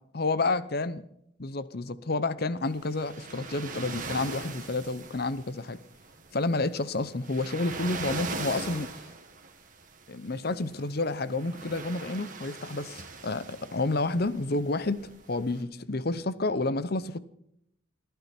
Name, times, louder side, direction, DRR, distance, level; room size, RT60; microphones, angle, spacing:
voice 1, 0.1-1.0 1.4-5.8 6.3-8.9 10.1-17.2, left 2 dB, 50° left, 15 dB, 0.8 m, -30 dB
sound 1, 2.7-15.6, right 3 dB, 40° right, 1.8 m, -41 dB
27.5 x 11.5 x 4.4 m, 0.75 s
head